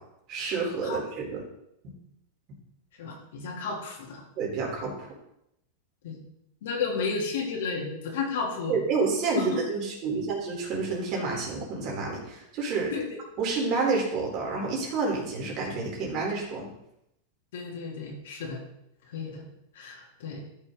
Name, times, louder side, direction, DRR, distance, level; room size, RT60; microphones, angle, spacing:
voice 1, 0.3-1.3 1.8-1.9 4.4-5.1 8.7-12.9 13.4-16.7, right 4 dB, 40° right, -2 dB, 3.9 m, -29 dB
voice 2, 3.0-4.2 6.0-6.2 6.6-8.8 9.4-9.6 12.9-13.1 17.5-18.6 19.1-19.4 19.7-20.4, left 5 dB, 75° left, -1 dB, 3.4 m, -32 dB
13.5 x 6.3 x 4.0 m, 0.81 s
supercardioid pair, 135°, 0 cm